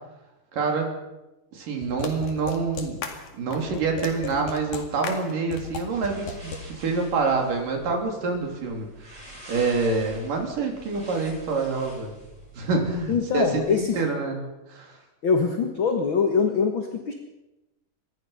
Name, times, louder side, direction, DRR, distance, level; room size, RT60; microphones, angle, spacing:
voice 1, 0.5-0.9 1.5-3.0 3.3-8.9 9.5-12.1 12.5-14.4 14.7-15.0, right 4 dB, 85° right, 2 dB, 5.0 m, -26 dB
sound 1, 1.8-6.6, left 5 dB, 70° left, 3.6 m, -35 dB
sound 2, 5.6-13.8, equal, 10° right, 6.6 m, -46 dB
voice 2, 13.1-14.0 15.2-17.1, left 5 dB, 45° left, 4 dB, 2.0 m, -23 dB
26.0 x 21.0 x 5.7 m, 0.99 s
omnidirectional pair, 3.7 m